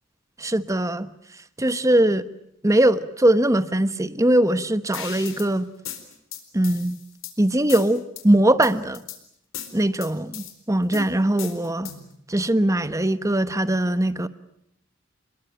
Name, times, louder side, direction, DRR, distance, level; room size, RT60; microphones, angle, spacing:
voice 1, 0.4-1.1 1.6-2.3 2.6-5.7 6.5-7.0 7.4-9.0 9.7-11.9 12.3-14.3, right 1 dB, 15° right, 1.1 m, -21 dB
sound 1, 4.9-5.5 5.9-7.3 7.7-8.2 8.6-9.2 9.5-10.5 10.9-12.1, left 8 dB, 85° left, 4.3 m, -36 dB
28.0 x 22.0 x 9.0 m
head